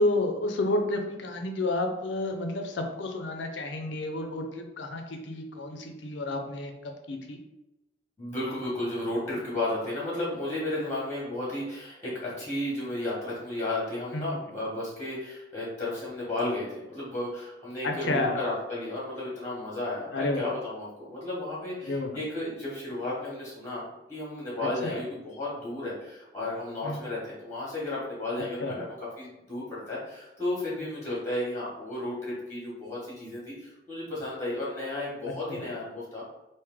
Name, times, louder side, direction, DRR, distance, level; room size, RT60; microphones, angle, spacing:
voice 1, 0.0-7.4 14.1-14.4 17.8-18.4 20.1-20.4 21.9-22.2 24.6-25.0 26.8-27.0 28.6-28.8 35.3-35.6, left 2 dB, 65° left, 4 dB, 0.5 m, -30 dB
voice 2, 8.2-36.2, left 1 dB, 15° left, -7 dB, 1.1 m, -33 dB
3.2 x 2.7 x 3.5 m, 0.95 s
head